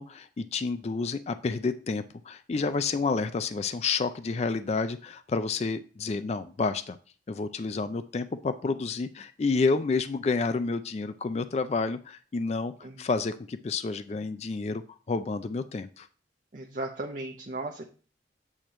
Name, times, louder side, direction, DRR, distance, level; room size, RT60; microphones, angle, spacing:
voice 1, 0.0-7.0 7.3-12.7 13.0-14.8 15.1-16.1, left 4 dB, 35° left, 11 dB, 0.3 m, -29 dB
voice 2, 16.5-17.8, right 2 dB, 45° right, 1 dB, 0.6 m, -36 dB
8.5 x 3.0 x 6.2 m, 0.41 s
head